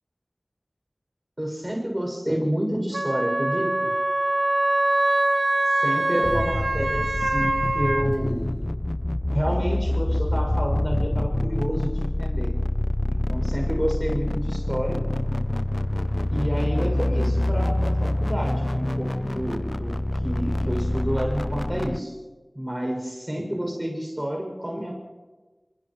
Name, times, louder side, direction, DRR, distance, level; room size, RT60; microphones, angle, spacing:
voice 1, 1.4-3.9 5.6-8.4 9.3-12.5 13.0-15.0 16.3-19.9 20.2-22.2 22.5-24.9, equal, 20° right, 0 dB, 6.8 m, -29 dB
Wind instrument woodwind instrument, 2.9-8.0, right 1 dB, 75° right, 1.6 m, -23 dB
sound 1, 6.2-22.0, left 1 dB, 35° left, 0.5 m, -26 dB
29.5 x 28.5 x 3.2 m, 1.3 s
wide cardioid pair, 45°, 0 cm